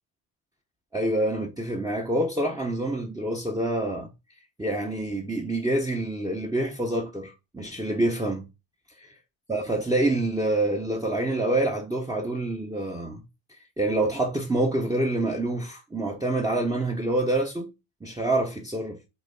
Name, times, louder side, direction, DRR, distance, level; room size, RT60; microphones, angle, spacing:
voice 1, 0.9-4.1 4.6-8.5 9.0-9.1 9.5-13.2 13.5-17.7 18.0-19.0, right 1 dB, 10° right, 1.1 m, -27 dB
6.1 x 4.5 x 5.4 m
cardioid pair, 120°, 45 cm